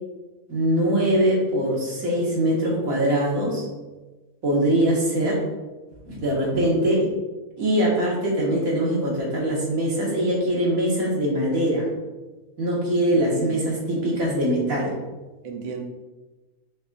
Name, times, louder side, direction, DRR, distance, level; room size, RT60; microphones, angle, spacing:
voice 1, 0.5-3.7 4.4-5.4 6.1-7.1 7.6-11.9 12.6-14.9, right 1 dB, 70° right, -4 dB, 2.1 m, -22 dB
voice 2, 13.1-13.8 15.4-15.8, right 5 dB, 45° right, 2 dB, 0.5 m, -36 dB
10.0 x 4.4 x 2.5 m, 1.2 s
omnidirectional pair, 1.6 m